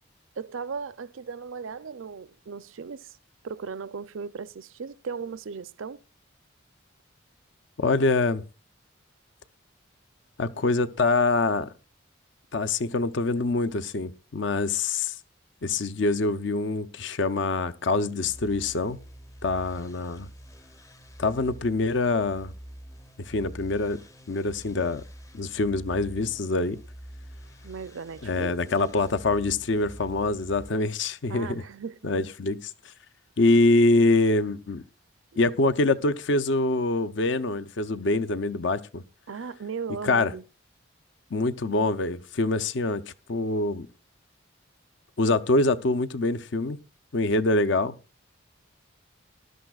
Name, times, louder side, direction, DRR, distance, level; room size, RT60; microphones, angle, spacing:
voice 1, 0.4-3.2 3.4-6.0 27.6-28.9 31.3-32.0 39.3-40.4, right 5 dB, 80° right, 0.5 m, -37 dB
voice 2, 7.8-8.4 10.4-11.7 12.5-15.2 15.6-19.0 19.4-20.3 21.2-22.5 23.3-24.0 24.3-25.0 25.3-26.8 28.2-31.6 32.0-32.7 33.4-34.8 35.4-39.0 40.0-40.3 41.3-43.0 43.3-43.9 45.2-46.8 47.1-48.0, left 3 dB, 65° left, 0.6 m, -25 dB
sound 1, 18.2-30.7, equal, 15° left, 0.6 m, -46 dB
19.0 x 12.0 x 2.4 m
head